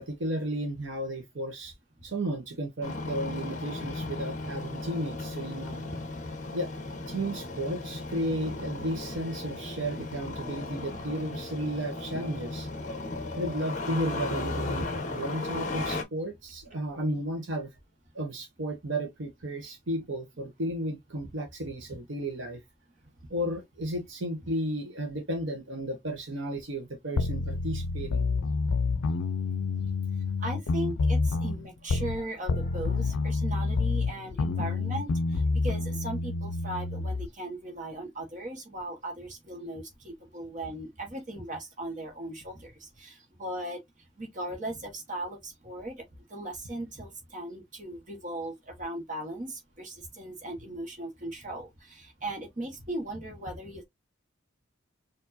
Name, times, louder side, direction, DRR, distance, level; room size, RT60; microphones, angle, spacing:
voice 1, 0.0-1.7 2.0-5.9 6.5-6.8 7.1-12.7 13.4-17.7 18.1-22.6 23.3-28.3, right 1 dB, 65° right, 0.9 m, -33 dB
Engine starting, 2.8-16.0, left 2 dB, 35° left, 0.9 m, -36 dB
sound 1, 27.2-32.2 32.5-37.3, left 4 dB, 90° left, 0.4 m, -28 dB
voice 2, 30.4-43.8 44.2-46.0 46.3-53.8, right 1 dB, 35° right, 1.3 m, -38 dB
4.6 x 2.6 x 2.6 m
head